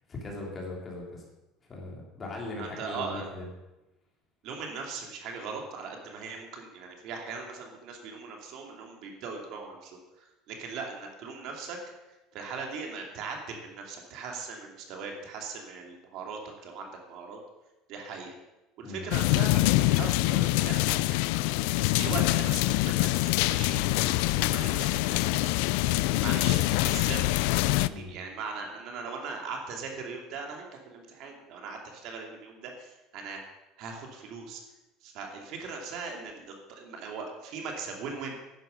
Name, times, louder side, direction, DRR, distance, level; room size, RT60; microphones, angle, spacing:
voice 1, 0.1-1.2 1.7-3.4 18.8-19.1 27.8-28.2, left 2 dB, 20° left, -1 dB, 3.3 m, -39 dB
voice 2, 2.6-3.3 4.4-11.8 12.3-17.4 17.9-18.3 18.8-20.9 22.0-23.1 23.5-25.3 26.2-33.4 33.8-34.6 35.0-38.4, right 4 dB, 55° right, 2 dB, 2.5 m, -39 dB
sound 1, 19.1-27.9, left 19 dB, 75° left, 0.4 m, -25 dB
11.0 x 9.8 x 6.7 m, 0.99 s
cardioid pair, 160°, 0 cm